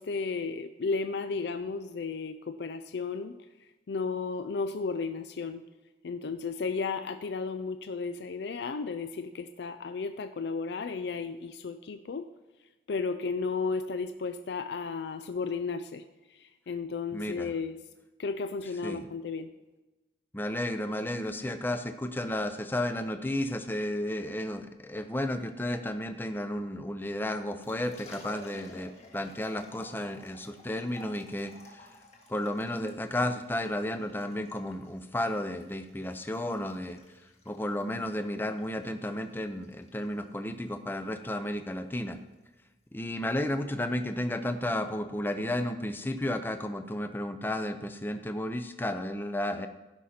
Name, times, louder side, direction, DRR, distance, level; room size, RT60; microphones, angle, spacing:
voice 1, 0.0-3.4 3.9-5.6 6.0-12.3 12.9-17.8 18.2-19.5, left 4 dB, 75° left, 9 dB, 0.4 m, -34 dB
voice 2, 17.1-17.5 18.8-19.0 20.3-31.8 32.3-37.0 37.5-42.2 42.9-49.7, left 1 dB, 10° left, 8 dB, 0.6 m, -33 dB
Liquid, 27.6-44.8, left 1 dB, 40° left, 1.7 m, -54 dB
16.0 x 5.6 x 4.3 m, 1.1 s
head